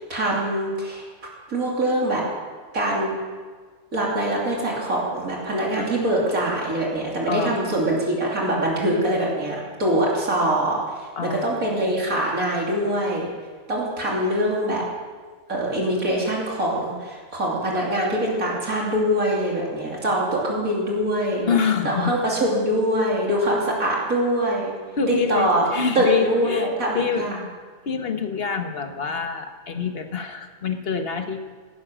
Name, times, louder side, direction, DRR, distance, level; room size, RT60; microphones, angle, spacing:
voice 1, 0.1-1.0 1.5-2.2 2.7-3.2 3.9-13.3 13.7-14.8 15.5-21.5 21.8-24.7 25.1-25.6 25.9-27.4, right 1 dB, 60° right, -3 dB, 3.2 m, -23 dB
voice 2, 7.3-7.6 11.2-11.6 11.9-12.0 21.5-22.1 25.0-26.7 26.9-27.3 27.9-31.4, left 6 dB, 40° left, 6 dB, 1.4 m, -26 dB
17.0 x 11.0 x 6.3 m, 1.5 s
omnidirectional pair, 1.6 m